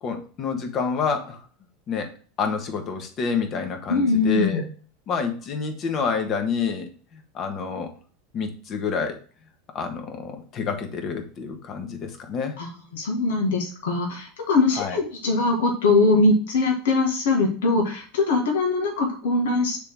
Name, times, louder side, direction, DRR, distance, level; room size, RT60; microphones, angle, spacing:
voice 1, 0.0-1.4 1.9-2.1 2.4-4.6 5.1-6.9 7.3-7.9 8.3-9.2 9.7-12.6 14.7-15.0, left 5 dB, 40° left, 5 dB, 1.5 m, -28 dB
voice 2, 3.9-4.6 12.6-19.8, left 3 dB, 70° left, 0 dB, 1.7 m, -22 dB
6.8 x 3.4 x 4.6 m, 0.40 s
hypercardioid pair, 90°, 0 cm